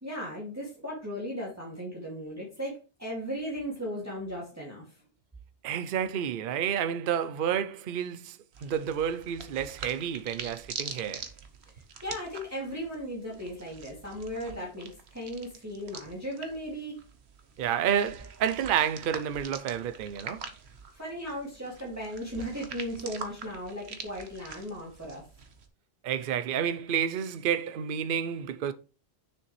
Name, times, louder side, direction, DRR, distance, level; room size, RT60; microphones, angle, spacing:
voice 1, 0.0-5.0 12.0-17.0 20.9-25.2, equal, 15° right, 2.3 m, -37 dB
voice 2, 5.6-11.3 17.6-20.4 26.0-28.7, right 8 dB, 60° right, 0.8 m, -30 dB
sound 1, 8.5-25.7, right 5 dB, 80° right, 1.3 m, -45 dB
6.7 x 6.6 x 3.2 m
omnidirectional pair, 1.1 m